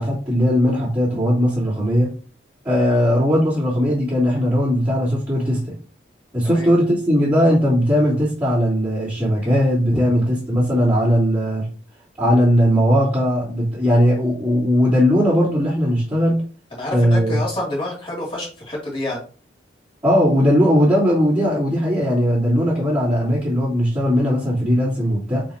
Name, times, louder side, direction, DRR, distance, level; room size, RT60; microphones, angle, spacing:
voice 1, 0.0-2.1 2.6-5.8 6.3-11.7 12.2-16.4 16.9-17.4 20.0-25.5, equal, 15° right, -12 dB, 3.2 m, -18 dB
voice 2, 16.7-19.2, left 1 dB, 30° left, -4 dB, 2.9 m, -27 dB
7.2 x 5.3 x 3.0 m, 0.38 s
head